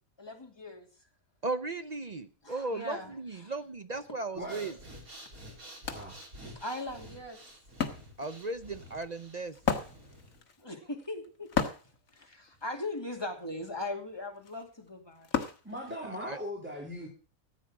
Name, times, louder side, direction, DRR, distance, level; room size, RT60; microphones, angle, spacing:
voice 1, 0.2-0.9 2.4-3.5 6.5-7.4 10.6-11.5 12.2-15.3, left 2 dB, 15° left, 2 dB, 2.7 m, -39 dB
voice 2, 1.4-4.7 8.2-9.6 16.1-16.4, right 3 dB, 45° right, 10 dB, 0.6 m, -36 dB
voice 3, 4.3-4.7 5.9-6.2 15.6-17.1, equal, 10° right, -2 dB, 3.2 m, -39 dB
Breathing, 4.4-10.4, right 1 dB, 85° right, 4.1 m, -50 dB
Wood, 4.8-4.9 5.3-16.5, left 7 dB, 70° left, 1.8 m, -37 dB
14.5 x 8.9 x 6.1 m, 0.39 s
omnidirectional pair, 1.5 m